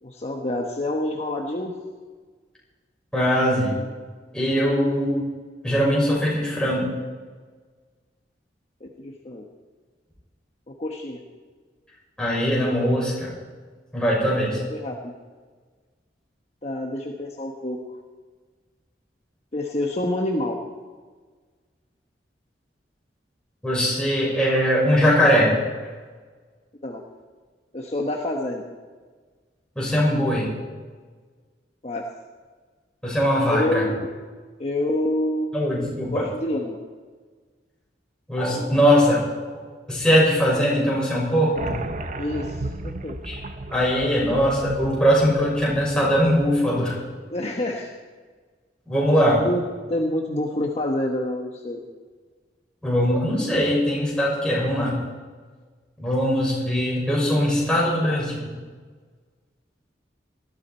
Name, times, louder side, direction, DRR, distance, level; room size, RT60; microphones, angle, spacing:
voice 1, 0.0-1.7 8.8-9.5 10.7-11.2 14.7-15.1 16.6-17.8 19.5-20.6 26.8-27.0 27.7-28.7 31.8-32.1 33.5-34.1 34.6-35.5 36.1-36.8 42.2-43.2 47.3-47.9 49.4-49.6 49.9-51.8, left 1 dB, 40° left, 0 dB, 1.2 m, -27 dB
voice 2, 3.1-3.7 4.3-5.2 5.6-6.9 12.2-13.3 13.9-14.6 23.6-25.6 29.7-30.6 33.0-33.9 35.5-36.2 38.3-39.2 39.9-41.8 43.2-43.4 43.7-46.9 48.9-49.4 52.8-55.0 56.0-58.5, equal, 5° left, -6 dB, 6.3 m, -21 dB
sound 1, 41.6-46.8, right 2 dB, 45° right, 0.9 m, -34 dB
19.5 x 14.0 x 4.5 m, 1.4 s
head